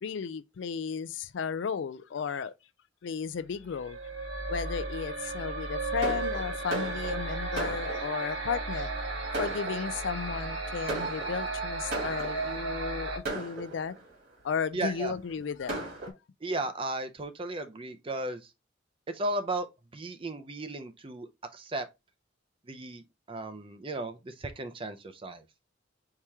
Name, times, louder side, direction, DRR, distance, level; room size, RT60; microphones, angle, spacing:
voice 1, 0.0-2.5 3.0-4.0 4.5-8.9 9.4-13.9 14.4-15.8, left 6 dB, 65° left, 0.4 m, -34 dB
sound 1, 3.7-13.2, right 3 dB, 75° right, 1.6 m, -34 dB
Fireworks, 6.0-8.4 9.0-9.1 9.3-10.2 10.9-12.6 13.2-14.2 14.9-15.0 15.3-15.4 15.7-16.1, right 2 dB, 55° right, 2.3 m, -37 dB
voice 2, 14.7-15.1 16.4-18.4 19.1-19.7 19.9-21.9 22.7-23.0 23.3-25.4, right 2 dB, 25° right, 0.5 m, -35 dB
4.7 x 2.9 x 3.4 m
head